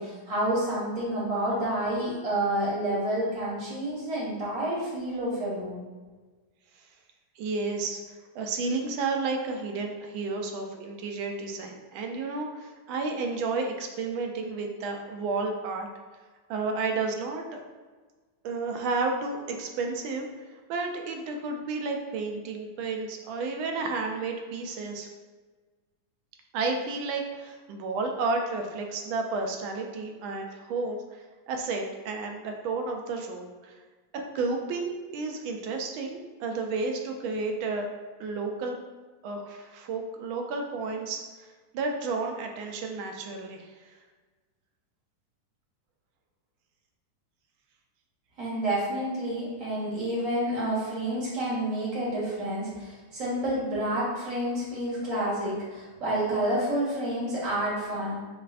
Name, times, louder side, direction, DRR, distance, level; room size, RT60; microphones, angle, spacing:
voice 1, 0.0-5.8 48.4-58.2, right 1 dB, 45° right, -7 dB, 1.6 m, -29 dB
voice 2, 7.4-15.9 16.5-17.6 18.4-20.3 20.7-25.1 26.5-33.8 34.1-37.9 38.2-38.8 39.2-41.2 41.7-43.7, right 3 dB, 75° right, 3 dB, 1.3 m, -32 dB
5.4 x 2.5 x 2.4 m, 1.3 s
omnidirectional pair, 2.3 m